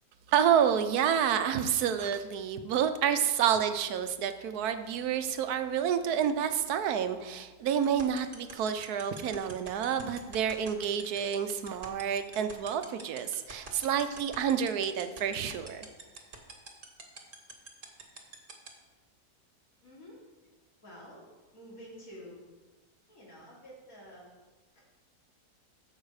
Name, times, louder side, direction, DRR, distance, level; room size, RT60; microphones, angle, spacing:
voice 1, 0.3-15.9, right 8 dB, 85° right, 9 dB, 1.2 m, -29 dB
sound 1, 7.8-18.7, right 3 dB, 35° right, 1.4 m, -44 dB
voice 2, 19.8-20.2 20.8-21.3 21.5-22.4 23.1-24.3 24.7-24.8, equal, 65° left, -5 dB, 3.3 m, -49 dB
14.0 x 5.7 x 4.8 m, 1.2 s
omnidirectional pair, 1.6 m